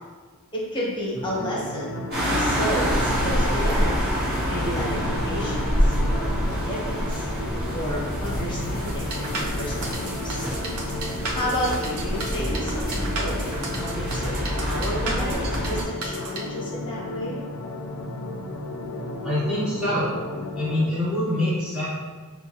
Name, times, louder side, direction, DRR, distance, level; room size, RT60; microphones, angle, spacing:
voice 1, 0.5-4.0 4.5-7.2 7.7-10.4 11.3-13.4 13.7-14.3 14.6-17.4, equal, 20° left, -5 dB, 0.9 m, -32 dB
sound 1, 1.2-20.9, left 2 dB, 70° left, 0.4 m, -34 dB
sound 2, 2.1-15.8, equal, 45° right, 1.5 m, -27 dB
sound 3, 8.9-16.4, right 3 dB, 75° right, 0.7 m, -33 dB
voice 2, 19.2-20.1 20.5-21.9, left 1 dB, 5° right, -10 dB, 0.7 m, -25 dB
5.7 x 2.6 x 2.9 m, 1.4 s
head